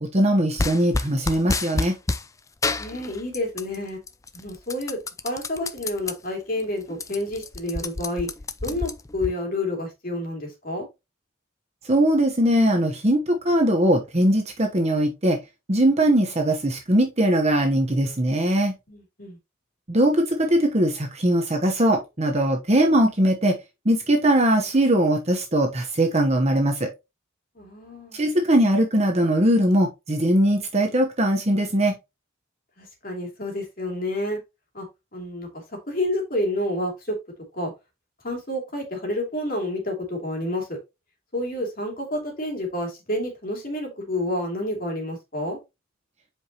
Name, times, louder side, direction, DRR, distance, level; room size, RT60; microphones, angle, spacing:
voice 1, 0.0-1.9 11.9-15.4 15.7-18.7 19.9-23.5 23.9-26.9 28.1-31.9, right 1 dB, 30° right, 1.0 m, -20 dB
sound 1, 0.6-2.3 2.6-3.8 4.1-6.1 6.6-6.7 6.9-9.3, left 3 dB, 15° left, 0.4 m, -28 dB
voice 2, 2.8-4.0 4.3-5.0 5.2-8.3 8.6-10.9 18.9-19.4 27.6-28.2 32.8-34.4 34.7-34.9 35.1-35.5 35.9-37.2 37.5-37.7 38.2-40.8 41.3-45.6, left 1 dB, 45° left, 2.8 m, -29 dB
7.9 x 5.0 x 2.9 m
head